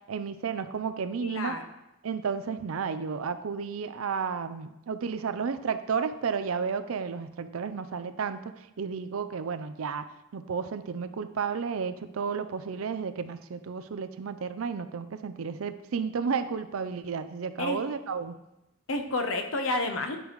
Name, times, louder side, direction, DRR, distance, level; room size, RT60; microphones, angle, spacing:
voice 1, 0.1-1.6 2.0-8.5 8.8-10.0 10.3-18.3, right 6 dB, 90° right, 10 dB, 0.5 m, -32 dB
voice 2, 1.2-1.6 17.6-17.8 18.9-20.2, left 2 dB, 80° left, 5 dB, 0.9 m, -30 dB
10.0 x 5.0 x 3.1 m, 0.90 s
head